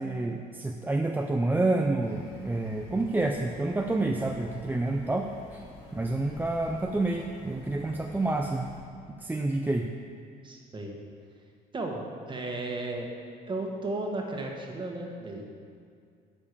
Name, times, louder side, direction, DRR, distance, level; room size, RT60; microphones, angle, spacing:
voice 1, 0.0-5.6 5.9-8.7 9.2-9.9, right 2 dB, 10° right, 2 dB, 0.5 m, -28 dB
sound 1, 2.0-8.8, left 2 dB, 80° left, 1.9 m, -49 dB
voice 2, 10.4-10.9 11.7-13.1 13.5-15.4, right 2 dB, 30° right, 1 dB, 1.6 m, -34 dB
9.8 x 5.3 x 6.8 m, 2.2 s
cardioid pair, 110°, 17 cm